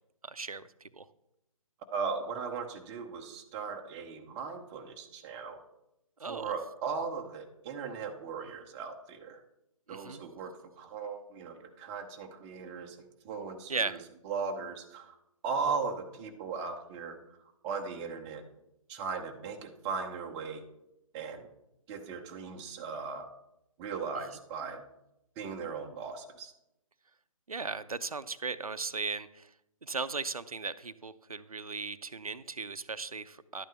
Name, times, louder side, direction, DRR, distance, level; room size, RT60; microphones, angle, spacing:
voice 1, 0.2-0.7 0.9-1.1 6.2-6.5 9.9-10.2 13.7-14.0 27.5-29.5 29.8-33.7, right 4 dB, 80° right, 13 dB, 0.6 m, -37 dB
voice 2, 1.9-5.6 6.3-9.4 9.9-14.0 14.2-15.1 15.4-17.2 17.6-18.4 18.9-20.6 21.1-21.5 21.9-23.3 23.8-24.8 25.4-26.5, right 5 dB, 15° right, 3 dB, 0.7 m, -37 dB
11.5 x 8.9 x 3.4 m, 0.86 s
figure-of-eight pair, 145°, 18 cm